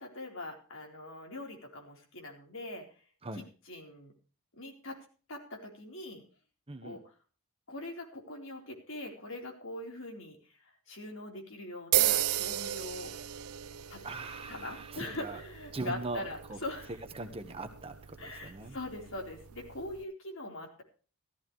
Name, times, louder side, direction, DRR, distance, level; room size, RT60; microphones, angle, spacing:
voice 1, 0.0-2.8 3.7-4.1 4.6-5.0 5.3-6.2 6.8-7.0 7.7-10.4 10.9-13.1 13.9-14.0 14.5-16.9 18.2-20.8, left 1 dB, 60° left, 2 dB, 4.0 m, -42 dB
voice 2, 6.7-7.0 14.0-15.4 15.7-16.6 17.1-18.8, right 2 dB, 25° right, 7 dB, 1.2 m, -41 dB
sound 1, 11.9-20.0, right 12 dB, 80° right, 0.6 m, -35 dB
15.0 x 14.0 x 3.2 m, 0.37 s
head